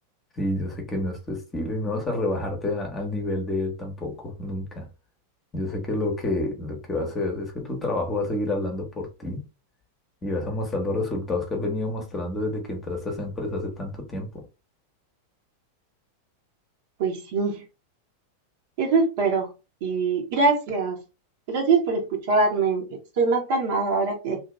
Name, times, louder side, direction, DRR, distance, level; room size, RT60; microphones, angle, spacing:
voice 1, 0.4-4.9 5.5-9.4 10.2-14.5, left 2 dB, 20° left, 1.0 m, -29 dB
voice 2, 17.0-17.6 18.8-19.5 19.8-21.0 21.5-24.4, right 4 dB, 50° right, 1.1 m, -23 dB
2.8 x 2.8 x 3.5 m
figure-of-eight pair, 90°, 0 cm